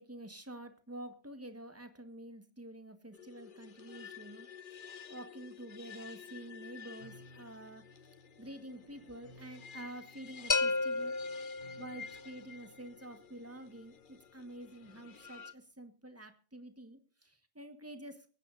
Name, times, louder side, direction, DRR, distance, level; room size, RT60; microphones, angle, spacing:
voice 1, 0.0-4.8 5.1-7.8 8.4-11.1 11.8-18.2, right 1 dB, 15° right, 8 dB, 1.5 m, -48 dB
sound 1, 3.1-15.5, left 7 dB, 50° left, 1.0 m, -52 dB
sound 2, 7.0-15.4, equal, 55° right, 5.3 m, -61 dB
sound 3, 10.5-12.3, left 3 dB, 30° left, 0.3 m, -33 dB
24.0 x 9.8 x 2.6 m, 0.38 s
omnidirectional pair, 1.1 m